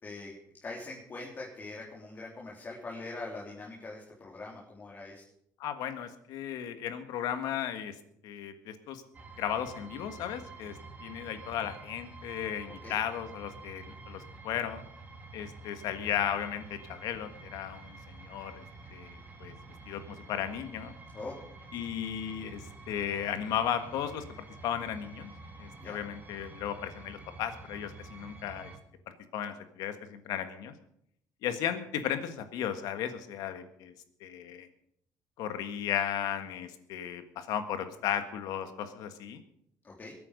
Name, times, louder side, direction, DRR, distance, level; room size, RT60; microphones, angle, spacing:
voice 1, 0.0-5.2 12.7-13.0 21.1-21.4 25.8-26.0 39.8-40.1, left 3 dB, 30° left, -4 dB, 3.6 m, -43 dB
voice 2, 5.6-7.9 8.2-9.0 9.4-10.7 11.0-14.8 15.3-18.6 18.9-19.5 19.9-20.9 21.7-24.2 24.6-25.3 25.6-28.7 29.3-30.7 31.4-33.9 34.2-34.7 35.4-39.4, left 9 dB, 80° left, 8 dB, 1.7 m, -35 dB
sound 1, 9.1-28.8, right 3 dB, 25° right, 2.4 m, -49 dB
22.0 x 9.0 x 5.3 m, 0.71 s
cardioid pair, 120°, 7 cm